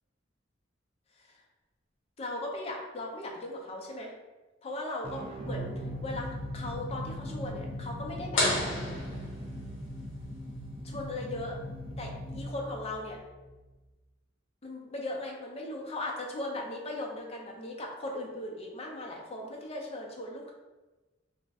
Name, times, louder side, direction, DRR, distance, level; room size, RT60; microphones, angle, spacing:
voice 1, 2.2-4.2 4.6-8.6 10.8-11.6 12.0-13.2 14.6-20.5, left 1 dB, 30° left, 0 dB, 0.5 m, -38 dB
sound 1, 5.0-13.7, equal, 30° right, 0.3 m, -39 dB
sound 2, 8.4-10.0, left 1 dB, 85° left, 0.9 m, -31 dB
2.5 x 2.1 x 3.4 m, 1.2 s
head